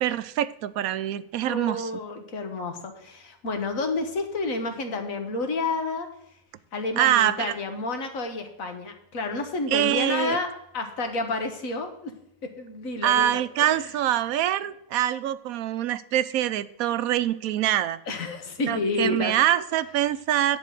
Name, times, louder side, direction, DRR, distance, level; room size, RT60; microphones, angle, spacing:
voice 1, 0.0-1.9 7.0-7.5 9.7-10.4 13.0-18.0 18.7-20.6, right 12 dB, 80° right, 14 dB, 1.0 m, -24 dB
voice 2, 1.4-6.1 6.7-12.1 12.4-13.9 18.1-19.3, left 3 dB, 65° left, 5 dB, 1.8 m, -30 dB
10.5 x 4.2 x 7.4 m, 0.81 s
omnidirectional pair, 1.5 m